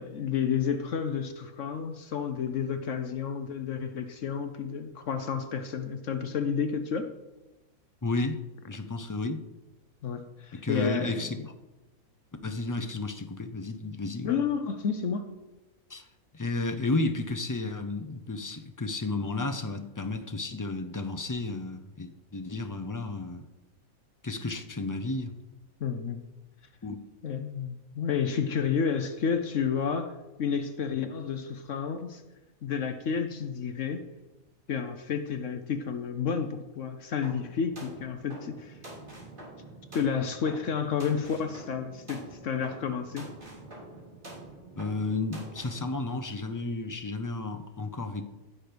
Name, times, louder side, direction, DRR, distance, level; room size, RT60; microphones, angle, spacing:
voice 1, 0.0-7.1 10.0-11.3 14.2-15.3 25.8-26.2 27.2-32.2 32.6-34.0 34.7-38.8 39.9-43.3, left 6 dB, 60° left, 8 dB, 1.0 m, -31 dB
voice 2, 8.0-8.4 8.7-9.4 10.6-11.5 12.4-14.3 15.9-16.1 16.3-23.5 24.2-25.3 26.8-27.0 44.8-48.2, left 3 dB, 25° left, 7 dB, 0.4 m, -32 dB
sound 1, 37.2-45.9, right 2 dB, 35° right, 3.1 m, -46 dB
15.0 x 6.1 x 5.1 m, 1.1 s
omnidirectional pair, 1.5 m